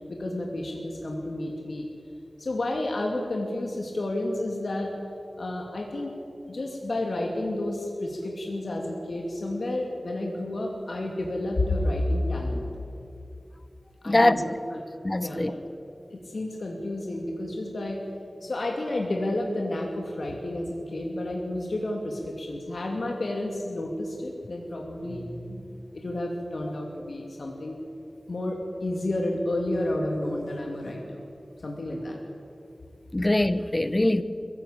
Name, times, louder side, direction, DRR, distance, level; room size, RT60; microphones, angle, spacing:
voice 1, 0.1-1.9 2.4-4.9 5.4-6.1 6.5-12.7 14.0-14.6 15.2-15.6 16.1-18.0 18.4-25.6 25.9-27.8 28.3-31.2 31.6-32.2, left 1 dB, 70° left, 0 dB, 2.6 m, -30 dB
voice 2, 14.0-14.4 15.0-15.5 33.1-34.2, left 1 dB, 25° left, 13 dB, 1.0 m, -22 dB
22.5 x 15.5 x 8.8 m, 2.7 s
wide cardioid pair, 75°, 0 cm